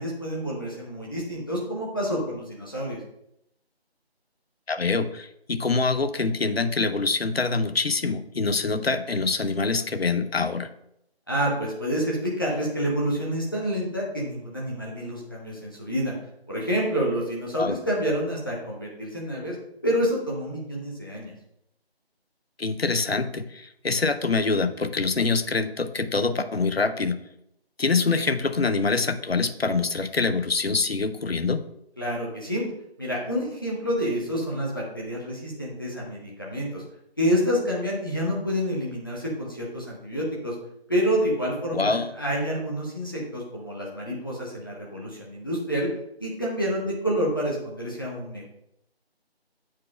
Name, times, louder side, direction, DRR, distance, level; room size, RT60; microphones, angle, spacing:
voice 1, 0.0-3.0 11.3-16.1 16.5-19.6 19.8-21.3 32.0-32.7 33.0-36.8 37.2-40.5 40.9-45.9 46.2-48.4, equal, 20° left, -4 dB, 0.9 m, -28 dB
voice 2, 4.7-10.7 17.5-17.8 22.6-27.2 27.8-31.6 41.7-42.1, left 4 dB, 70° left, 11 dB, 0.7 m, -25 dB
9.0 x 7.5 x 2.4 m, 0.78 s
figure-of-eight pair, 160°, 32 cm